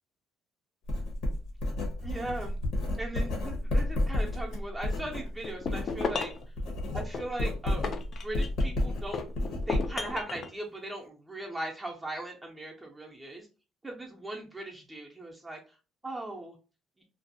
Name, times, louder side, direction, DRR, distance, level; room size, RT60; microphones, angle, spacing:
Writing, 0.9-6.1 6.4-10.1, left 1 dB, 70° left, 1.0 m, -31 dB
voice 1, 2.0-2.6 3.0-6.3 6.9-7.8 8.2-9.3 9.7-13.5 13.8-15.6 16.0-16.6, right 1 dB, 10° right, 0 dB, 0.5 m, -38 dB
sound 1, 5.4-6.5 7.1-8.7 9.1-10.5, left 5 dB, 40° left, 0.4 m, -35 dB
2.5 x 2.3 x 2.6 m, 0.33 s
cardioid pair, 120°, 0 cm